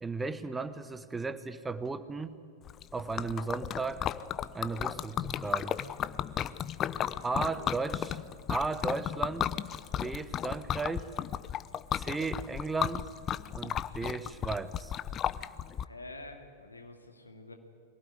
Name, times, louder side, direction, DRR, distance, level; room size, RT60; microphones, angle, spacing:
voice 1, 0.0-2.4 2.9-4.1 4.5-5.8 7.2-8.2 8.5-9.4 10.0-11.1 11.9-13.0 13.5-14.9, right 4 dB, 10° right, 13 dB, 1.0 m, -35 dB
Liquid, 2.7-15.8, left 10 dB, 30° left, 0.6 m, -34 dB
voice 2, 15.8-17.5, left 2 dB, 80° left, 4 dB, 2.5 m, -47 dB
23.5 x 17.0 x 9.4 m, 2.4 s
figure-of-eight pair, 90°, 0 cm